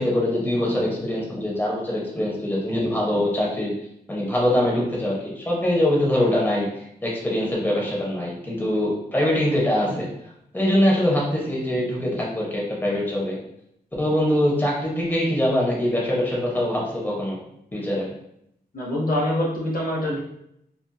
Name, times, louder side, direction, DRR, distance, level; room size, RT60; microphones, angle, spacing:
voice 1, 0.0-3.7 4.1-10.1 10.5-13.4 14.0-17.4 17.7-18.1, left 1 dB, 10° left, -3 dB, 0.8 m, -23 dB
voice 2, 18.7-20.2, left 1 dB, 55° left, -4 dB, 0.8 m, -24 dB
2.6 x 2.5 x 2.2 m, 0.75 s
wide cardioid pair, 75°, 17 cm